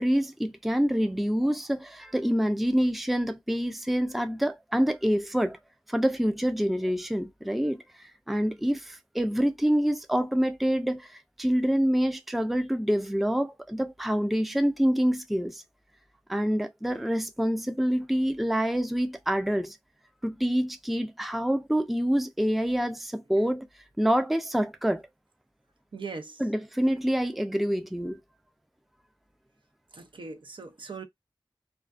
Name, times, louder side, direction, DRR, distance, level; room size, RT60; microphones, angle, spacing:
voice 1, 0.0-5.6 5.9-15.6 16.3-19.8 20.2-23.7 24.0-25.0 26.4-28.2, equal, ahead, 0.4 m, -26 dB
voice 2, 25.9-26.4 29.9-31.0, right 4 dB, 65° right, 0.6 m, -40 dB
2.3 x 2.2 x 2.4 m
cardioid pair, 45°, 9 cm